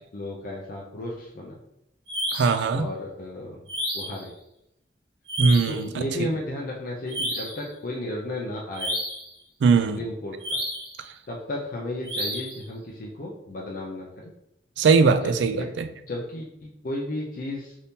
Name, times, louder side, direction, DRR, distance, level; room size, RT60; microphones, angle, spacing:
voice 1, 0.1-1.6 2.7-3.6 3.9-4.3 5.7-9.0 9.9-10.6 11.3-14.3 15.2-15.3 15.6-15.7 16.1-17.8, left 1 dB, 50° left, -2 dB, 0.4 m, -34 dB
sound 1, 2.1-2.6 3.7-4.2 5.3-5.8 7.1-7.6 8.7-9.3 10.4-11.0 12.0-12.6, equal, 25° right, 1.4 m, -30 dB
voice 2, 2.3-2.9 5.4-6.3 9.6-10.0 14.8-15.9, right 4 dB, 80° right, 10 dB, 0.3 m, -20 dB
3.5 x 2.7 x 2.7 m, 0.84 s
head